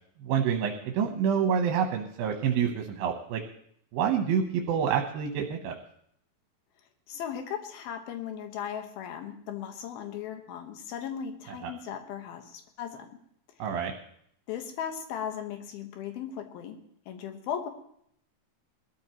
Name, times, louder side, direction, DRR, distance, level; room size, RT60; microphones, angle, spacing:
voice 1, 0.2-3.4 3.9-5.7 11.5-11.7 13.6-13.9, right 7 dB, 80° right, 3 dB, 2.9 m, -27 dB
voice 2, 7.1-13.1 14.5-16.8 17.1-17.7, left 8 dB, 85° left, 5 dB, 3.2 m, -37 dB
20.0 x 13.5 x 3.0 m, 0.68 s
omnidirectional pair, 4.2 m